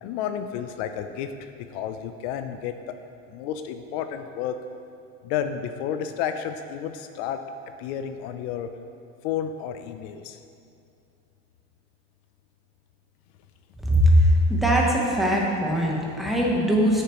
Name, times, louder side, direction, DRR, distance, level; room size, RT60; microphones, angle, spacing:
voice 1, 0.0-1.3 1.7-2.9 3.3-4.6 5.2-7.4 7.8-8.7 9.2-10.4, left 9 dB, 85° left, 8 dB, 0.6 m, -31 dB
voice 2, 14.5-17.0, equal, ahead, -3 dB, 0.9 m, -21 dB
11.5 x 6.5 x 3.0 m, 2.5 s
cardioid pair, 160°, 31 cm